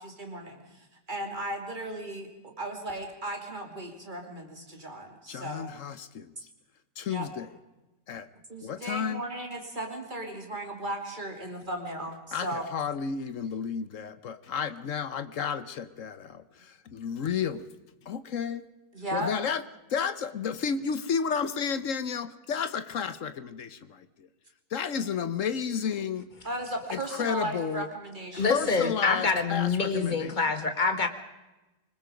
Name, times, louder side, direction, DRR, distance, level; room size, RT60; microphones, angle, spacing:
voice 1, 0.0-5.7 7.1-7.3 8.5-12.7 18.9-19.3 26.4-28.6, right 1 dB, 30° right, 2 dB, 3.1 m, -36 dB
voice 2, 5.3-6.3 7.0-7.5 8.1-8.3 8.6-9.2 12.3-17.8 18.0-18.6 19.1-19.6 19.9-24.3 24.7-26.3 26.9-27.9 28.4-30.3, left 7 dB, 55° left, 13 dB, 1.1 m, -32 dB
voice 3, 28.3-31.1, left 4 dB, 30° left, 7 dB, 1.7 m, -26 dB
25.0 x 21.0 x 5.2 m, 1.0 s
omnidirectional pair, 1.8 m